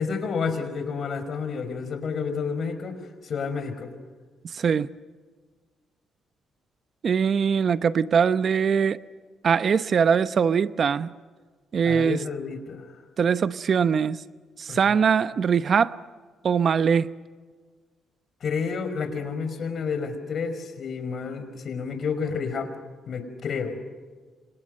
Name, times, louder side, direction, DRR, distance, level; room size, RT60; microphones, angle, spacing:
voice 1, 0.0-3.0 3.2-3.9 11.8-12.9 14.7-15.0 18.4-22.7 23.1-23.8, left 5 dB, 55° left, 9 dB, 5.3 m, -30 dB
voice 2, 4.5-4.9 7.0-9.0 9.4-11.1 11.7-12.2 13.2-14.2 14.6-15.9 16.4-17.1, right 6 dB, 50° right, 15 dB, 0.8 m, -22 dB
29.5 x 26.5 x 6.6 m, 1.5 s
cardioid pair, 90°, 0 cm